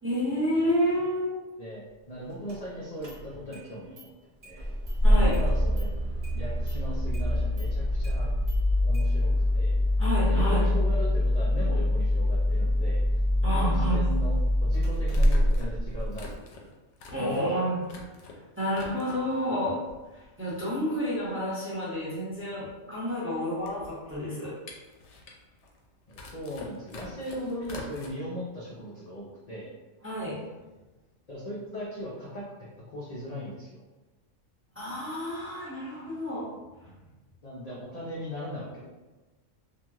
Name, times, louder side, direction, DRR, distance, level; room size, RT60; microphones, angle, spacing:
voice 1, 0.0-1.4 5.0-5.4 10.0-10.6 13.4-14.0 17.1-17.8 18.6-19.8 20.1-24.5 30.0-30.4 34.8-36.5 36.8-36.9, equal, 15° right, -8 dB, 0.5 m, -29 dB
voice 2, 1.6-4.1 4.4-4.7 5.1-5.9 6.3-8.3 8.8-9.7 10.2-13.0 13.4-16.3 17.1-17.5 26.1-29.7 31.3-32.4 32.9-33.8 37.4-38.9, equal, 55° left, -6 dB, 0.4 m, -38 dB
Engine starting, 2.5-2.6 3.0-3.6 4.0-4.1 4.4-16.3, left 1 dB, 50° right, 0.8 m, -25 dB
sound 1, 12.3-12.4 14.1-14.2 15.1-18.4 18.7-19.4 19.9-20.5 20.8-20.9 21.1-28.1, left 3 dB, 70° left, 0.8 m, -46 dB
2.9 x 2.4 x 2.3 m, 1.2 s
omnidirectional pair, 1.3 m